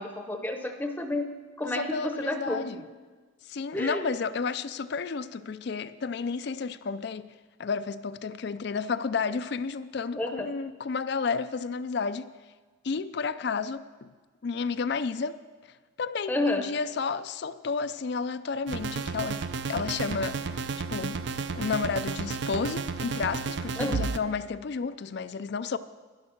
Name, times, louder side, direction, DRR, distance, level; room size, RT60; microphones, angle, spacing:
voice 1, 0.0-2.7 3.7-4.1 10.2-10.5 16.3-16.7 23.8-24.1, left 2 dB, 10° left, 0.7 m, -30 dB
voice 2, 1.7-2.8 3.4-7.3 7.6-12.3 12.8-14.1 14.4-15.7 16.0-19.4 19.7-20.6 20.9-21.2 21.5-25.8, left 5 dB, 55° left, 0.4 m, -31 dB
sound 1, 18.7-24.2, right 4 dB, 55° right, 0.5 m, -32 dB
11.5 x 10.5 x 5.9 m
head